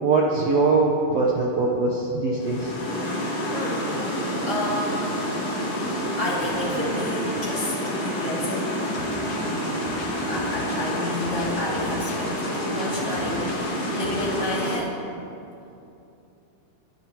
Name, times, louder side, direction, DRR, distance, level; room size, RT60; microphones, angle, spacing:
voice 1, 0.0-2.7, right 3 dB, 85° right, -2 dB, 1.4 m, -22 dB
sound 1, 2.4-14.8, equal, 85° left, 6.0 m, -28 dB
voice 2, 3.5-3.9 4.4-5.2 6.2-9.0 9.4-9.8 10.2-15.0, left 1 dB, 20° left, -5 dB, 2.3 m, -31 dB
sound 2, 8.9-14.4, left 2 dB, 70° left, 4.0 m, -42 dB
27.0 x 11.0 x 3.1 m, 2.8 s
omnidirectional pair, 4.6 m